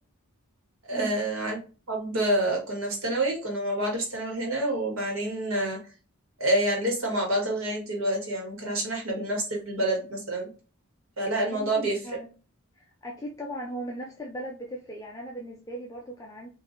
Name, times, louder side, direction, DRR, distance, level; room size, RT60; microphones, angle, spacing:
voice 1, 0.9-1.6 1.9-5.8 6.4-10.5 11.2-12.0, right 1 dB, 70° right, -1 dB, 1.5 m, -27 dB
voice 2, 11.5-12.3 12.8-16.5, right 1 dB, 15° left, -2 dB, 0.4 m, -38 dB
3.8 x 2.7 x 2.5 m, 0.35 s
head